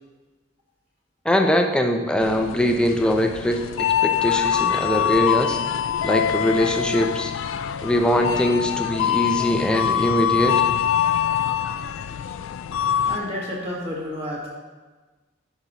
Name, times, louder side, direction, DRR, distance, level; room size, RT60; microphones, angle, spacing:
voice 1, 1.2-5.6 6.0-7.3 7.8-10.6, equal, 5° left, 4 dB, 0.5 m, -22 dB
sound 1, 2.2-13.2, left 9 dB, 80° left, 0.3 m, -24 dB
voice 2, 13.0-14.5, left 1 dB, 30° right, -4 dB, 1.7 m, -30 dB
9.7 x 5.5 x 3.0 m, 1.3 s
head